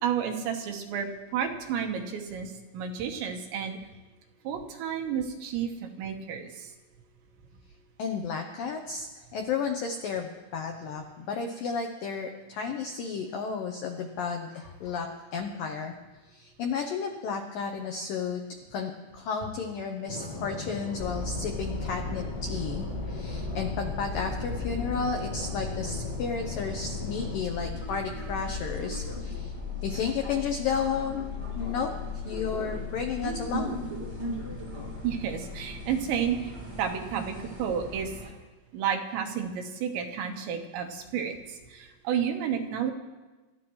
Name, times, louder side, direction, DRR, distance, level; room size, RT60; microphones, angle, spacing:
voice 1, 0.0-3.8 4.4-6.7 35.0-36.4 36.8-38.1 38.7-41.4 41.7-42.9, right 8 dB, 80° right, 3 dB, 3.4 m, -31 dB
voice 2, 8.0-15.9 16.3-18.4 18.7-29.5 29.8-31.3 31.6-33.9, left 5 dB, 80° left, 3 dB, 2.0 m, -33 dB
sound 1, 20.1-27.4, left 2 dB, 30° left, 4.5 m, -38 dB
sound 2, 21.0-38.3, left 3 dB, 10° right, 1.2 m, -36 dB
26.5 x 13.5 x 3.1 m, 1.2 s
omnidirectional pair, 5.2 m